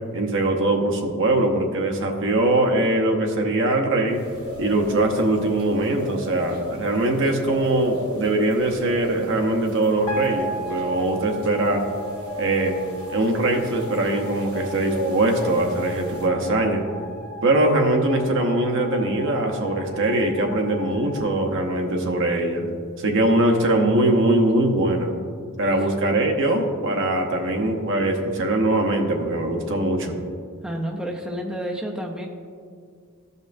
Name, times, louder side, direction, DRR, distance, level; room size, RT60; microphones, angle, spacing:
voice 1, 0.1-4.2 4.6-11.9 12.4-12.8 13.1-16.9 17.4-22.7 23.0-25.2 25.6-30.2, right 1 dB, 60° right, 3 dB, 0.8 m, -22 dB
sound 1, 4.1-16.3, equal, 80° right, 1.7 m, -36 dB
sound 2, 10.1-22.3, right 1 dB, 30° left, 1.3 m, -37 dB
voice 2, 30.6-32.3, equal, 5° right, 0 dB, 0.5 m, -30 dB
13.5 x 5.4 x 2.6 m, 2.1 s
head